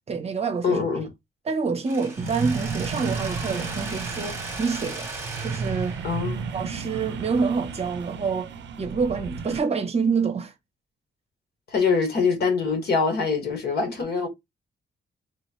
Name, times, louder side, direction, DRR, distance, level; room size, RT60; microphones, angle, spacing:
voice 1, 0.1-0.8 1.5-5.1 5.4-6.0 6.5-8.5 8.8-10.5, right 5 dB, 35° right, 0.7 m, -27 dB
voice 2, 0.6-1.1 2.2-2.3 6.0-6.5 11.7-14.3, left 5 dB, 60° left, 1.4 m, -24 dB
Mechanisms, 1.9-7.7, right 3 dB, 10° right, 1.1 m, -38 dB
sound 1, 2.2-9.6, right 5 dB, 80° right, 0.5 m, -33 dB
3.8 x 3.0 x 2.9 m
wide cardioid pair, 175°, 19 cm